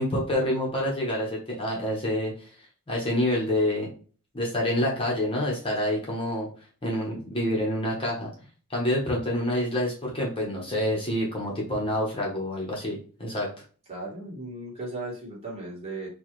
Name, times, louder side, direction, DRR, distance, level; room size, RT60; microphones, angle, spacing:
voice 1, 0.0-2.3 2.9-3.9 4.3-6.5 6.8-8.3 8.7-13.5, left 1 dB, 25° left, -3 dB, 1.1 m, -27 dB
voice 2, 13.9-16.1, right 2 dB, 30° right, -5 dB, 1.7 m, -36 dB
4.6 x 2.5 x 3.0 m, 0.39 s
head